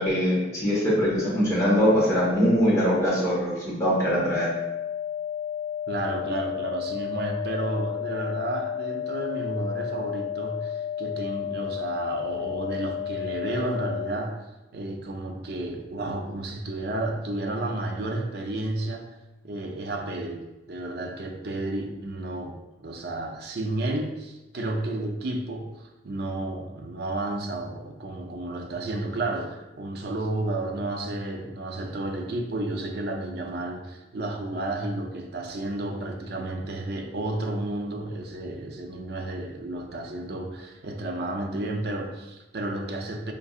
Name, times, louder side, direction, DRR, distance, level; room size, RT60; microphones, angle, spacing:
voice 1, 0.0-4.5, equal, 15° left, -7 dB, 1.2 m, -22 dB
sound 1, 4.1-14.1, left 9 dB, 85° left, 0.4 m, -32 dB
voice 2, 5.9-14.4 14.7-19.1 19.4-43.3, right 2 dB, 55° right, 3 dB, 0.5 m, -32 dB
5.2 x 2.6 x 2.4 m, 1.0 s
head